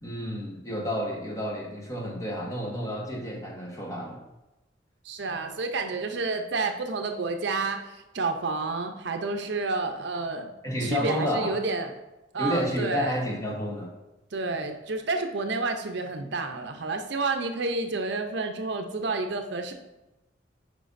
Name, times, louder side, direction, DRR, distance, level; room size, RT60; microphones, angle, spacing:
voice 1, 0.0-4.2 10.6-11.5 12.4-13.9, equal, 15° left, -1 dB, 1.1 m, -30 dB
voice 2, 5.0-10.5 10.8-11.9 12.3-13.2 14.3-19.7, right 3 dB, 60° right, 5 dB, 0.6 m, -30 dB
9.1 x 5.0 x 2.5 m, 1.0 s
head